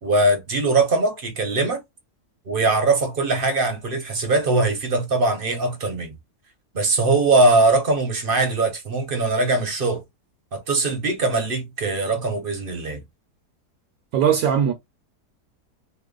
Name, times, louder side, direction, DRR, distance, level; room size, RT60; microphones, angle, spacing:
voice 1, 0.0-1.8 2.5-6.2 6.7-10.0 10.5-13.0, right 2 dB, 45° right, 0.8 m, -21 dB
voice 2, 14.1-14.7, right 8 dB, 75° right, 1.1 m, -19 dB
3.0 x 2.1 x 3.7 m
omnidirectional pair, 1.7 m